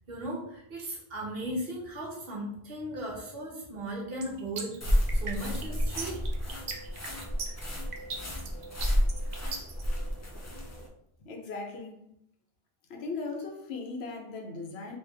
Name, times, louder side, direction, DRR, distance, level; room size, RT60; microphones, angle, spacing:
voice 1, 0.1-4.8 5.1-6.2, right 1 dB, 70° right, 1.2 m, -36 dB
sound 1, 4.2-9.8, right 4 dB, 50° right, 0.6 m, -38 dB
sound 2, 4.8-10.9, equal, 25° left, 0.4 m, -31 dB
voice 2, 11.2-12.2 12.9-15.0, left 3 dB, 90° left, 0.9 m, -38 dB
3.3 x 2.9 x 3.3 m
omnidirectional pair, 1.0 m